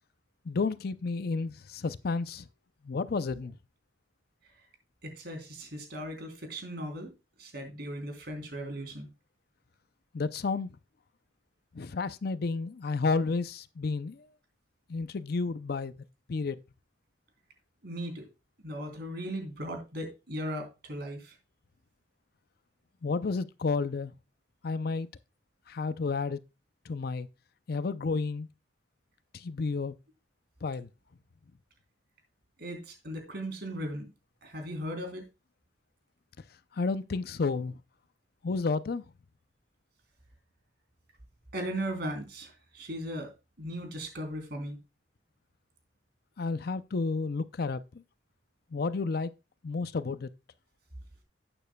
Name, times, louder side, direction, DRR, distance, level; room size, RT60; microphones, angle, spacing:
voice 1, 0.5-2.4 2.8-3.6 10.1-10.7 11.7-14.3 14.9-15.9 16.3-16.6 23.0-24.1 24.6-25.1 25.7-26.4 26.9-27.3 27.7-28.5 29.3-29.9 30.6-30.9 36.8-37.8 38.4-39.0 46.4-47.8 48.7-49.3 49.6-50.3, left 4 dB, 60° left, 0.5 m, -31 dB
voice 2, 5.0-7.1 7.4-9.1 17.8-18.3 18.6-21.3 32.6-34.1 34.4-35.2 41.5-43.3 43.6-44.8, equal, 65° right, 3.3 m, -37 dB
12.0 x 9.0 x 2.2 m
head